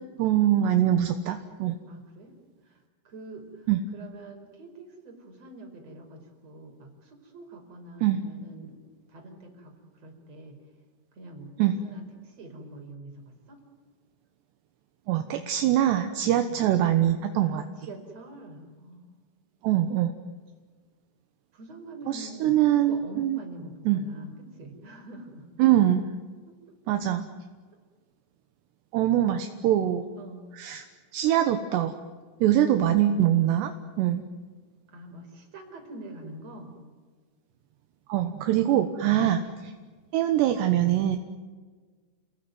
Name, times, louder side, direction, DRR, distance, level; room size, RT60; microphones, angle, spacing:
voice 1, 0.2-1.8 3.7-3.8 8.0-8.2 11.6-11.8 15.1-17.6 19.6-20.1 22.1-23.4 23.9-24.0 25.6-26.0 26.9-27.3 28.9-30.1 30.5-30.8 31.1-31.9 32.4-33.7 34.0-34.2 38.1-39.4 40.1-41.2, right 12 dB, 70° right, 7 dB, 2.8 m, -23 dB
voice 2, 1.9-2.3 2.6-8.8 9.1-10.6 11.1-13.6 16.3-16.6 17.4-19.2 21.5-25.5 26.7-26.8 30.2-30.5 34.9-36.7 39.3-39.6, right 1 dB, 30° right, 3 dB, 5.6 m, -45 dB
29.5 x 20.0 x 9.4 m, 1.5 s
omnidirectional pair, 6.0 m